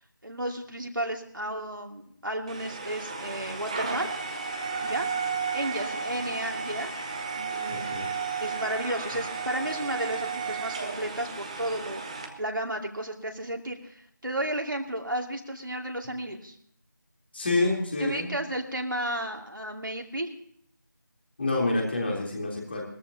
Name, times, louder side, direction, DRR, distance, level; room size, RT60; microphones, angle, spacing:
voice 1, 0.2-4.1 4.8-5.1 5.5-6.9 7.3-8.0 8.4-12.0 12.4-16.5 18.0-20.3, right 1 dB, 70° right, 2 dB, 2.5 m, -33 dB
sound 1, 2.5-12.3, right 5 dB, 20° right, 1.0 m, -33 dB
voice 2, 7.7-8.1 17.3-18.3 21.4-22.8, left 2 dB, 30° left, -1 dB, 3.5 m, -27 dB
21.5 x 14.0 x 2.9 m, 0.64 s
figure-of-eight pair, 170°, 11 cm